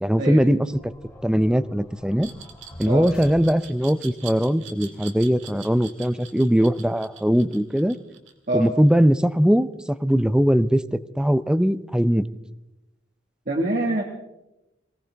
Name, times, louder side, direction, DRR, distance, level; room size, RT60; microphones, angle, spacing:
voice 1, 0.0-0.7 1.2-2.3 2.8-8.0 8.5-10.8 11.2-12.3, equal, 5° right, 14 dB, 0.5 m, -20 dB
sound 1, 0.7-4.1, equal, 15° left, 2.4 m, -45 dB
Glass, 2.2-9.0, right 8 dB, 80° right, 2.0 m, -43 dB
voice 2, 13.5-14.0, right 1 dB, 45° right, 0 dB, 1.7 m, -24 dB
23.5 x 17.5 x 3.4 m, 0.94 s
head